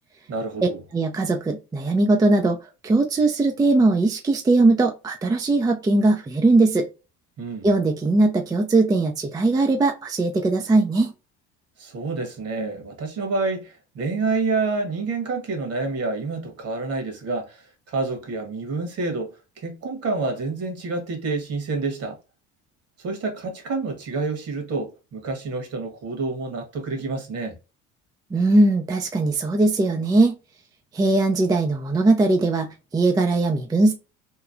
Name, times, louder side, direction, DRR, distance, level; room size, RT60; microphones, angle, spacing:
voice 1, 0.3-0.8 7.4-7.7 11.8-19.3 19.6-22.2 23.0-27.5, right 3 dB, 55° right, 1.3 m, -28 dB
voice 2, 0.9-2.6 2.8-6.9 7.6-11.1 28.3-30.4 30.9-33.9, right 2 dB, 15° right, 0.4 m, -20 dB
3.0 x 2.2 x 2.4 m
supercardioid pair, 90°, 29 cm